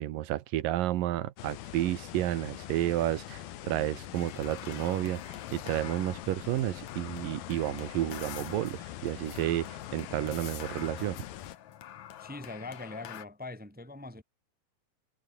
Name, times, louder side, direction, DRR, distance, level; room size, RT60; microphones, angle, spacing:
voice 1, 0.0-11.2, right 14 dB, 75° right, 2.8 m, -31 dB
sound 1, 1.4-11.6, left 13 dB, 90° left, 3.2 m, -43 dB
sound 2, 4.1-13.3, left 11 dB, 60° left, 2.5 m, -46 dB
voice 2, 12.2-14.2, left 2 dB, 5° right, 2.0 m, -42 dB
omnidirectional pair, 4.1 m